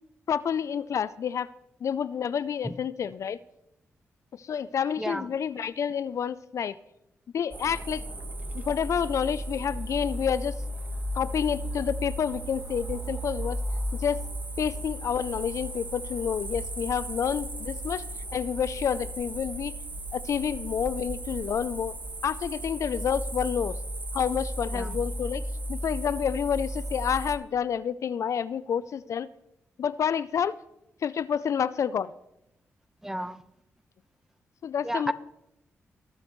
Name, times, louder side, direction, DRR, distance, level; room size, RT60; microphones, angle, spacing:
voice 1, 0.3-1.5 1.8-3.4 4.3-6.8 7.3-8.0 8.5-10.5 11.1-13.6 14.0-14.2 14.6-18.0 18.3-19.7 20.1-22.0 22.2-23.8 24.1-29.3 29.8-30.6 31.0-32.1 34.6-35.1, left 7 dB, 65° left, 17 dB, 0.4 m, -29 dB
voice 2, 5.0-5.3 24.7-25.0 33.0-33.4 34.8-35.1, right 1 dB, 10° right, 12 dB, 0.9 m, -32 dB
sound 1, 7.5-27.4, right 1 dB, 30° right, 1.6 m, -35 dB
19.5 x 7.7 x 3.1 m, 0.85 s
supercardioid pair, 50°, 6 cm